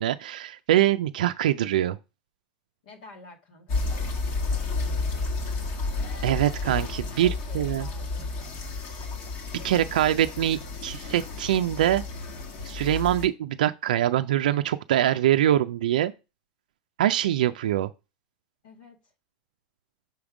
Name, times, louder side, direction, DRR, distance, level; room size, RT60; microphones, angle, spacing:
voice 1, 0.0-2.0 6.2-7.9 9.6-12.0 12.6-16.1 17.0-17.9, right 12 dB, 85° right, 0.3 m, -24 dB
voice 2, 2.8-5.2 5.5-5.6 7.1-8.3 18.6-19.0, left 2 dB, 80° left, 1.8 m, -50 dB
sound 1, 3.7-13.3, left 3 dB, 50° left, 1.5 m, -31 dB
5.8 x 3.6 x 4.8 m
hypercardioid pair, 115°, 4 cm